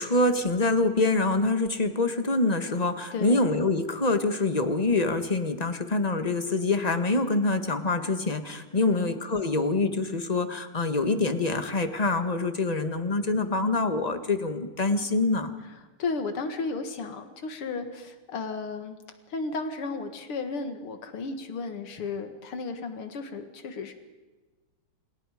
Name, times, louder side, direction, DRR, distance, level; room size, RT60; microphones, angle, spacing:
voice 1, 0.0-15.5, left 2 dB, 20° left, 8 dB, 1.7 m, -25 dB
voice 2, 3.1-3.4 8.8-9.1 16.0-19.0 19.3-23.9, left 4 dB, 85° left, 7 dB, 2.8 m, -34 dB
28.5 x 28.5 x 5.2 m, 1.2 s
omnidirectional pair, 2.4 m